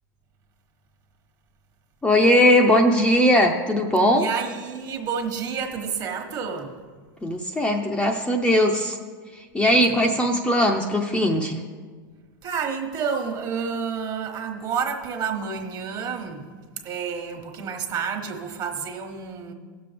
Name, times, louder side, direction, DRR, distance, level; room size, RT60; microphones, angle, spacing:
voice 1, 2.0-4.3 7.2-9.0 9.5-11.6, equal, 10° left, 2 dB, 0.6 m, -19 dB
voice 2, 4.1-6.7 9.9-10.0 12.4-16.5 16.8-19.5, right 6 dB, 35° right, 4 dB, 1.3 m, -29 dB
16.5 x 6.8 x 3.4 m, 1.5 s
supercardioid pair, 130°, 11 cm